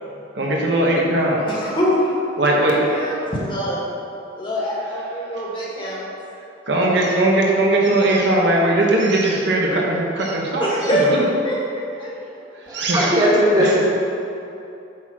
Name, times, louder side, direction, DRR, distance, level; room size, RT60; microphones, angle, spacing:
voice 1, 0.3-1.5 2.4-3.0 6.7-11.2 12.7-13.1 13.6-13.8, right 1 dB, 60° right, -3 dB, 1.3 m, -19 dB
voice 2, 1.5-2.1 2.8-3.8 4.4-6.1 10.6-11.1 11.4-12.1, equal, 25° left, -5 dB, 1.7 m, -24 dB
voice 3, 12.7-13.9, equal, 20° right, -6 dB, 1.7 m, -18 dB
9.0 x 4.3 x 6.2 m, 2.8 s
head